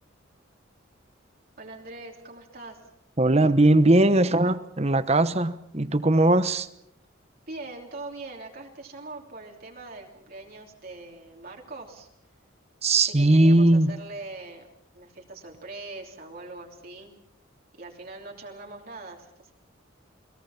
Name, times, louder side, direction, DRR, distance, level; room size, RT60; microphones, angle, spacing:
voice 1, 1.6-2.8 7.5-12.1 12.9-14.7 14.9-17.2 17.8-19.5, right 2 dB, 45° right, 3.2 m, -42 dB
voice 2, 3.2-6.7 12.8-13.9, right 2 dB, 30° right, 1.0 m, -19 dB
29.5 x 21.0 x 5.9 m
head